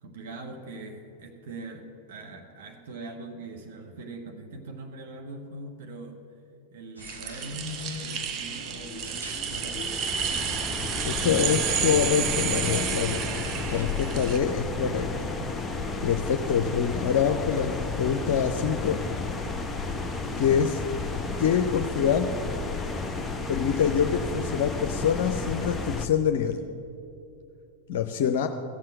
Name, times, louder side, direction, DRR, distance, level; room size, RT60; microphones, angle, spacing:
voice 1, 0.0-6.2 6.7-10.0, right 1 dB, 55° right, 3 dB, 1.2 m, -41 dB
sound 1, 7.0-14.4, right 8 dB, 35° right, 0.8 m, -31 dB
sound 2, 7.0-13.8, right 1 dB, 85° right, 1.5 m, -43 dB
sound 3, 7.5-26.1, left 3 dB, 10° left, 0.8 m, -33 dB
voice 2, 11.1-13.2 13.7-15.3 16.0-19.0 20.4-20.8 21.4-22.3 23.5-26.6 27.9-28.5, left 7 dB, 55° left, 6 dB, 0.5 m, -25 dB
15.0 x 7.6 x 7.6 m, 2.7 s
figure-of-eight pair, 90°, 0 cm